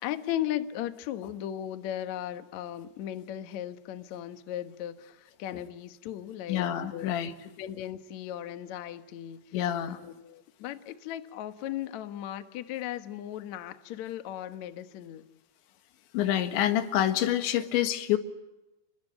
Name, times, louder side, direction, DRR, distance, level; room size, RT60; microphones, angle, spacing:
voice 1, 0.0-7.1 7.6-9.4 9.9-15.3, left 11 dB, 70° left, 1.7 m, -37 dB
voice 2, 6.5-7.3 9.5-10.0 16.1-18.2, left 11 dB, 85° left, 3.9 m, -27 dB
29.5 x 22.0 x 9.0 m
omnidirectional pair, 5.1 m